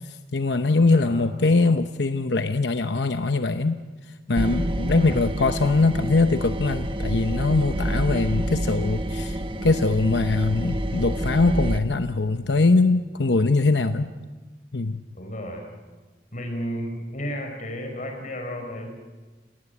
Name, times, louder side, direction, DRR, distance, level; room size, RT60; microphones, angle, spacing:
voice 1, 0.0-3.8 4.3-14.1 14.7-15.0, left 3 dB, 70° left, 8 dB, 0.9 m, -22 dB
voice 2, 0.9-1.3 5.0-5.2 15.1-15.7 16.3-18.9, equal, 45° left, 3 dB, 4.6 m, -33 dB
sound 1, 4.4-11.8, right 1 dB, 30° right, 1.2 m, -28 dB
29.0 x 18.5 x 9.6 m, 1.3 s
head